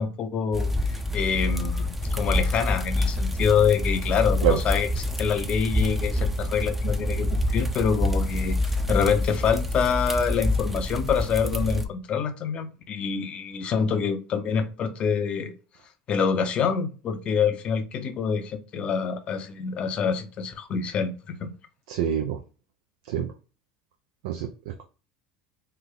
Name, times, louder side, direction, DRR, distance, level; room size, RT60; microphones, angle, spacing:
voice 1, 0.0-15.5 16.1-21.5, left 6 dB, 45° left, 0.7 m, -26 dB
sound 1, 0.5-11.9, left 1 dB, 5° right, 0.6 m, -27 dB
voice 2, 21.9-22.4 23.1-23.3 24.2-24.5, right 10 dB, 75° right, 0.5 m, -25 dB
3.3 x 2.2 x 3.7 m
hypercardioid pair, 90°, 3 cm